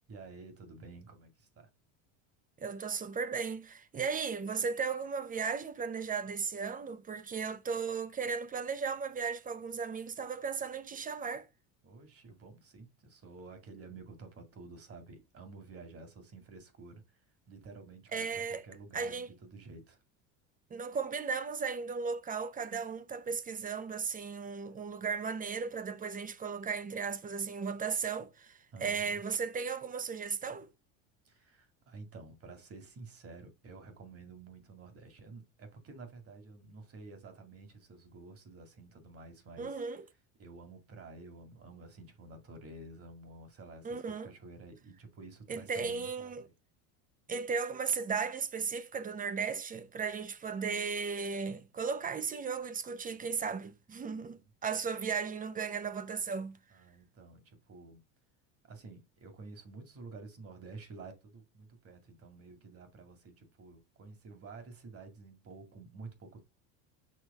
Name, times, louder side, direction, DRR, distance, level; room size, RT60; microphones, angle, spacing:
voice 1, 0.1-1.7 11.8-20.0 28.7-29.2 31.2-39.7 40.4-46.5 54.1-54.5 56.7-58.0 58.6-66.4, right 3 dB, 35° right, 2.1 m, -51 dB
voice 2, 2.6-11.5 18.1-18.6 18.9-19.3 20.7-30.7 39.6-40.1 43.8-44.3 45.5-46.5 47.3-56.6, right 5 dB, 20° right, 0.7 m, -36 dB
6.4 x 3.3 x 5.4 m
supercardioid pair, 105°, 39 cm